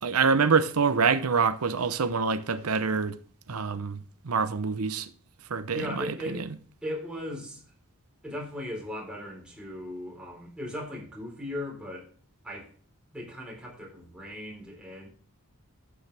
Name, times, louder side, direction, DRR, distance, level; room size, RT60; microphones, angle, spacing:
voice 1, 0.0-3.2 3.5-5.1 5.5-6.4, right 5 dB, 90° right, 0.8 m, -26 dB
voice 2, 5.7-6.5 6.8-7.7 8.2-12.1 12.4-12.7 13.1-15.1, left 1 dB, 5° right, 3.9 m, -37 dB
12.0 x 8.6 x 3.4 m
head